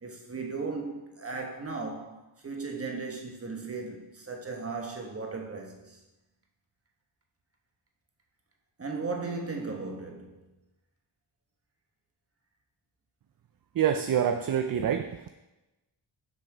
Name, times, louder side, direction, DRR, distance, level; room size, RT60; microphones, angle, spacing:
voice 1, 0.0-2.2 2.4-6.0 8.8-10.4, right 4 dB, 30° right, 1.2 m, -36 dB
voice 2, 13.8-15.3, right 8 dB, 50° right, 0.4 m, -26 dB
7.0 x 6.4 x 4.9 m
wide cardioid pair, 155°, 45 cm